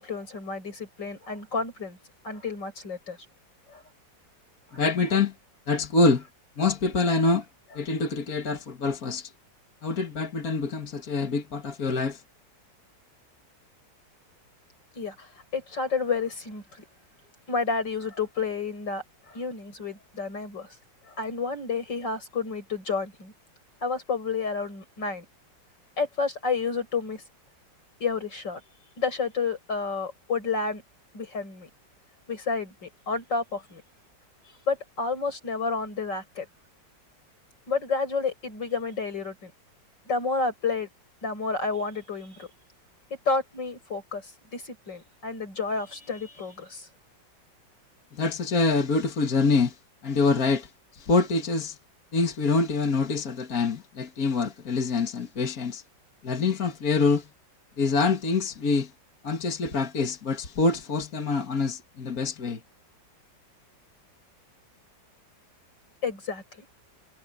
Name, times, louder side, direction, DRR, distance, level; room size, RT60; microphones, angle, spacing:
voice 1, 0.0-2.0 2.2-3.2 3.7-3.8 4.7-4.8 15.0-15.3 15.5-16.9 17.5-20.7 21.2-23.3 23.8-25.3 26.0-27.2 28.0-28.6 29.0-30.8 31.1-31.7 32.3-33.8 34.7-36.5 37.7-39.5 40.1-40.9 41.2-42.5 43.3-44.2 44.5-46.9 66.0-66.7, left 4 dB, 75° left, 7.1 m, -30 dB
voice 2, 4.7-5.3 5.7-6.2 6.6-7.4 7.7-9.3 9.8-12.2 48.1-49.8 50.0-51.8 52.1-55.8 56.2-57.3 57.8-58.9 59.2-62.6, left 4 dB, 50° left, 2.3 m, -25 dB
omnidirectional pair, 2.0 m